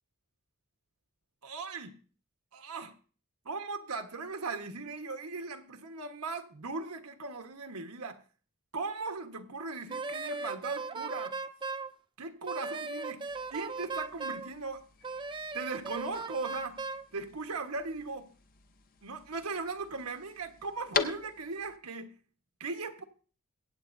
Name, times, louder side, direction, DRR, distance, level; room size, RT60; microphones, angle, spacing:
voice 1, 1.4-2.0 2.5-2.9 3.4-8.2 8.7-11.4 12.2-14.8 15.5-16.8 17.1-18.3 19.0-22.2 22.6-23.0, right 3 dB, 85° right, 1.3 m, -38 dB
Wind instrument woodwind instrument, 9.9-11.9 12.5-14.5 15.0-17.1, right 4 dB, 20° right, 0.5 m, -37 dB
sound 1, 13.3-21.8, left 6 dB, 40° left, 0.7 m, -42 dB
23.0 x 8.7 x 2.7 m
head